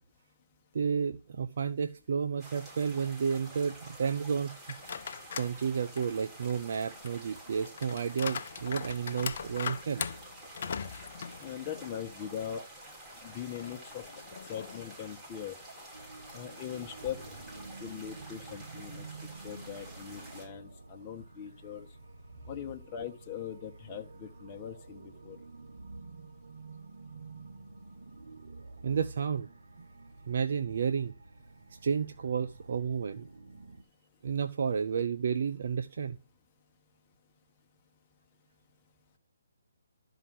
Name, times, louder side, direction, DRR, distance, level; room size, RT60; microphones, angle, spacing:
voice 1, 0.7-4.5 5.3-10.1 28.8-29.5 30.3-31.1 31.8-33.3 34.2-36.2, right 6 dB, 60° right, 0.8 m, -31 dB
sound 1, 2.4-20.5, right 1 dB, 20° right, 6.4 m, -49 dB
sound 2, 4.7-5.6 6.0-12.1 12.4-12.5 13.5-15.0, left 7 dB, 55° left, 0.8 m, -40 dB
voice 2, 11.4-12.7 13.2-14.1 14.5-15.5 16.3-17.3 17.8-19.1 19.4-21.9 22.5-25.4, left 9 dB, 25° left, 1.2 m, -41 dB
sound 3, 15.9-33.8, right 3 dB, 75° right, 1.3 m, -50 dB
12.5 x 5.0 x 7.8 m
figure-of-eight pair, 145°, 0 cm